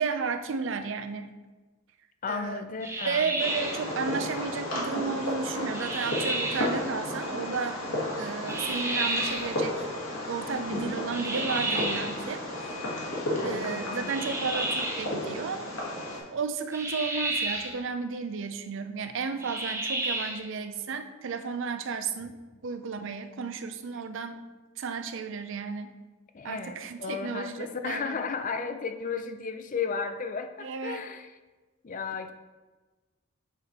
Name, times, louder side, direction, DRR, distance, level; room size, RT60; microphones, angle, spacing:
voice 1, 0.0-1.3 2.3-2.7 3.0-7.8 8.2-9.9 10.3-12.4 13.4-15.7 16.1-24.5 24.8-25.9 26.4-28.2 30.6-31.1, right 5 dB, 60° right, 9 dB, 0.5 m, -33 dB
voice 2, 2.2-3.3 13.3-14.1 26.3-31.3 31.8-32.3, left 5 dB, 40° left, 8 dB, 0.5 m, -34 dB
sound 1, 2.8-3.9 5.7-6.7 8.5-9.5 11.1-12.2 14.1-15.1 16.7-17.8 19.4-20.5, right 2 dB, 15° right, 0.7 m, -31 dB
Fireworks, 3.4-16.2, left 1 dB, 70° left, 1.7 m, -33 dB
7.0 x 4.1 x 4.2 m, 1.3 s
head